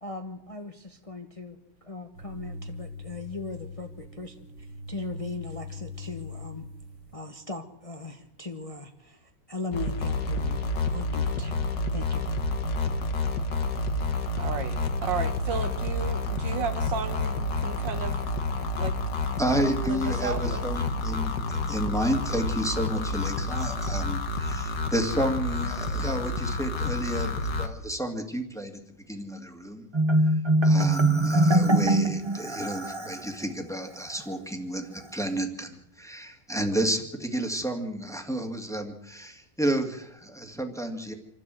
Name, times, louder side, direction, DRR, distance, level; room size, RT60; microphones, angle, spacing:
voice 1, 0.0-6.7 7.1-10.6 10.9-12.3, left 3 dB, 20° left, 5 dB, 1.2 m, -39 dB
sound 1, 2.1-7.1, left 2 dB, 50° right, 3.0 m, -41 dB
sound 2, 9.7-27.7, left 2 dB, 70° left, 2.3 m, -29 dB
voice 2, 14.4-18.2 18.7-18.9 19.8-20.7, right 6 dB, 80° right, 9 dB, 2.1 m, -34 dB
voice 3, 19.4-28.8 29.1-29.9 30.6-41.1, right 1 dB, ahead, 4 dB, 2.2 m, -31 dB
Marimba xylophone, 29.9-33.3, right 1 dB, 20° right, 0.8 m, -22 dB
27.0 x 12.0 x 7.8 m, 0.79 s
omnidirectional pair, 2.0 m